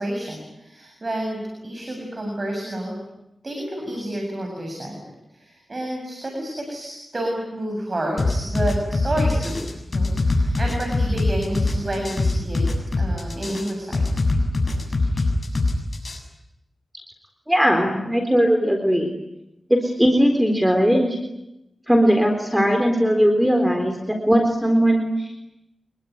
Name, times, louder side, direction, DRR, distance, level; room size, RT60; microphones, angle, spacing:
voice 1, 0.0-3.0 3.4-5.0 5.3-9.7 9.9-12.7 13.0-14.0, right 1 dB, 35° right, 1 dB, 7.7 m, -29 dB
sound 1, 8.2-16.2, left 3 dB, 45° left, 7.4 m, -22 dB
voice 2, 17.5-19.1 19.7-21.2 21.9-23.9 24.3-25.1, equal, 5° right, 4 dB, 4.0 m, -18 dB
27.0 x 21.5 x 9.6 m, 0.90 s
wide cardioid pair, 90°, 0 cm